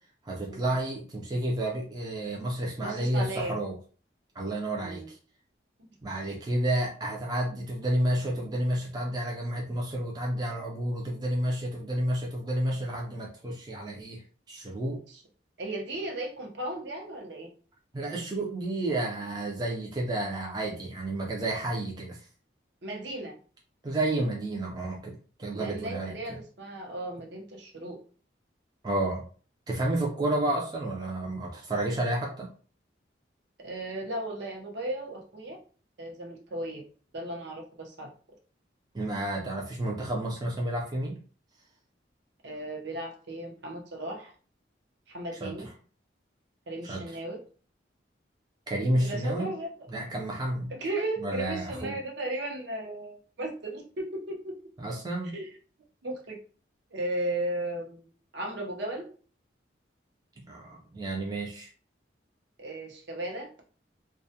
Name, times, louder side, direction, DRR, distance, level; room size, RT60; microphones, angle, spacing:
voice 1, 0.3-3.8 4.4-5.2 6.0-14.2 14.5-15.0 17.9-22.2 23.8-26.2 28.8-29.2 29.7-32.5 38.9-41.2 45.4-45.5 46.9-47.0 48.7-49.5 49.9-50.7 51.2-52.0 54.8-55.4 60.4-61.7, right 1 dB, 20° right, -2 dB, 0.4 m, -30 dB
voice 2, 2.8-3.6 4.8-5.1 15.1-15.2 15.6-17.5 22.8-23.4 25.5-28.0 33.6-35.6 36.0-36.8 37.1-38.1 42.4-44.3 45.1-45.7 46.7-47.4 49.0-49.7 50.7-54.6 55.3-55.5 56.0-56.4 56.9-58.1 58.3-59.1 62.6-63.5, right 1 dB, 70° right, 1 dB, 0.7 m, -35 dB
2.3 x 2.1 x 2.7 m, 0.40 s
head